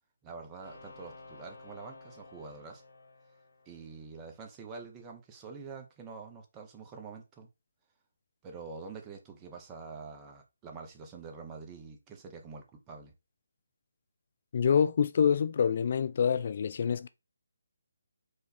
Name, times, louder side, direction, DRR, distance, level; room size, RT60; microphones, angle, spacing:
voice 1, 0.2-2.8 3.7-7.5 8.4-13.1, right 4 dB, 15° right, 1.0 m, -46 dB
sound 1, 0.6-4.3, left 3 dB, 80° left, 2.0 m, -53 dB
voice 2, 14.5-17.1, left 7 dB, 45° left, 0.3 m, -26 dB
4.9 x 2.6 x 4.1 m
figure-of-eight pair, 155°, 0 cm